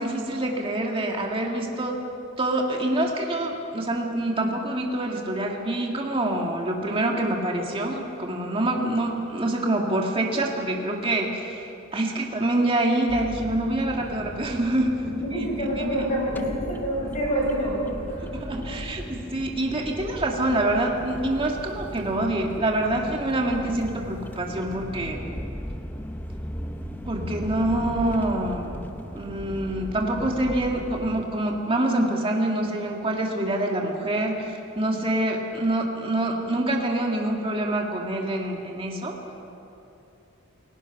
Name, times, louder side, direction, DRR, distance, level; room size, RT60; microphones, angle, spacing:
voice 1, 0.0-2.0 2.4-14.9 15.4-15.5 15.8-16.1 18.2-25.2 27.1-28.8 29.1-39.2, right 1 dB, 25° right, 0 dB, 2.0 m, -26 dB
sound 1, 13.1-31.2, equal, 10° left, 0.7 m, -37 dB
voice 2, 15.0-18.3 18.7-18.8, equal, 35° left, -3 dB, 7.2 m, -27 dB
29.0 x 17.5 x 5.9 m, 2.8 s
head